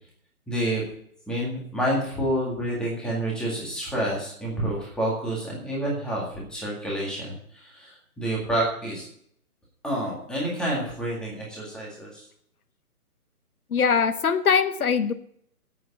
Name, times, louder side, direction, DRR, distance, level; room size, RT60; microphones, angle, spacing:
voice 1, 0.5-0.8 1.3-9.0 9.8-12.2, right 1 dB, ahead, -4 dB, 2.0 m, -28 dB
voice 2, 13.7-15.1, left 6 dB, 70° left, 12 dB, 1.0 m, -22 dB
9.2 x 8.5 x 8.6 m, 0.66 s
hypercardioid pair, 165°, 45 cm